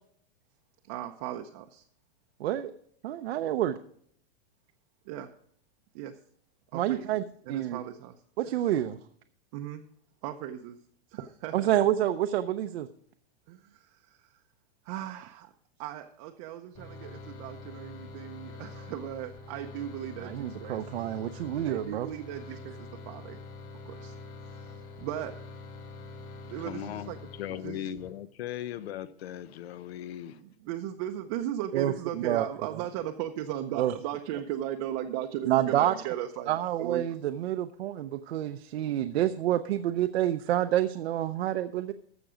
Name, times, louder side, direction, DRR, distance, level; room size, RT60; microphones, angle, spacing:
voice 1, 0.8-1.8 5.1-5.3 5.9-6.2 6.7-8.2 8.5-8.6 9.5-9.8 10.2-10.8 11.1-11.7 13.5-14.4 14.8-15.5 15.8-20.8 21.7-23.4 23.9-24.1 24.5-25.3 26.4-27.2 27.5-27.9 30.3-37.2, right 11 dB, 35° right, 0.6 m, -37 dB
voice 2, 2.4-2.7 3.0-3.8 6.7-7.2 7.5-7.8 8.4-9.0 11.5-12.9 20.2-22.1 31.7-31.9 32.2-32.4 33.7-33.9 35.5-35.9 36.5-41.9, right 12 dB, 75° right, 0.7 m, -28 dB
sound 1, 16.7-28.1, left 3 dB, 25° left, 2.0 m, -45 dB
voice 3, 26.6-27.1 27.4-30.4, left 11 dB, 75° left, 0.9 m, -38 dB
14.5 x 6.0 x 5.0 m
supercardioid pair, 165°, 32 cm